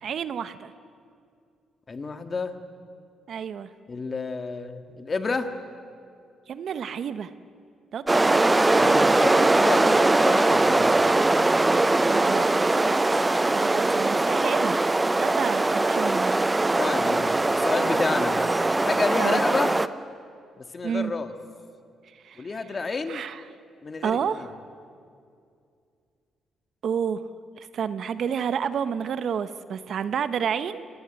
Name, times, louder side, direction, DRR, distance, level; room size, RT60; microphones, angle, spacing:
voice 1, 0.0-0.7 3.3-3.7 6.5-7.3 7.9-8.9 12.1-14.8 15.1-16.4 19.2-19.4 20.8-21.1 22.1-22.4 23.1-23.4 24.0-24.5 26.8-27.2 27.6-30.9, right 7 dB, 60° right, 13 dB, 1.0 m, -30 dB
voice 2, 1.9-2.5 3.9-5.5 8.8-10.9 16.8-18.5 18.8-19.7 20.6-21.3 22.4-23.2 23.8-24.5, left 4 dB, 35° left, 8 dB, 1.8 m, -29 dB
sound 1, 8.1-19.9, right 2 dB, 15° right, 0.7 m, -21 dB
26.0 x 18.5 x 9.1 m, 2.3 s
cardioid pair, 90°, 0 cm